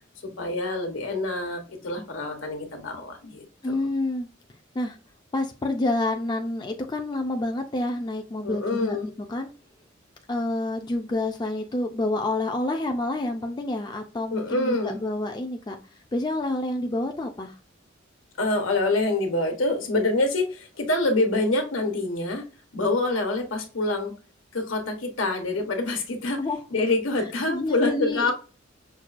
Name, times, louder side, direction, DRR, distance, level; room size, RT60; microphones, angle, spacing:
voice 1, 0.2-3.8 8.4-9.1 14.3-15.0 18.4-22.4 22.7-24.1 24.5-26.4 26.7-28.3, left 2 dB, 80° left, 3 dB, 1.1 m, -26 dB
voice 2, 3.6-4.3 4.7-5.0 5.3-9.0 9.3-9.5 10.3-15.8 16.1-17.5 26.4-26.6 27.5-28.3, left 2 dB, 20° left, 3 dB, 0.4 m, -28 dB
5.9 x 2.3 x 2.5 m, 0.35 s
head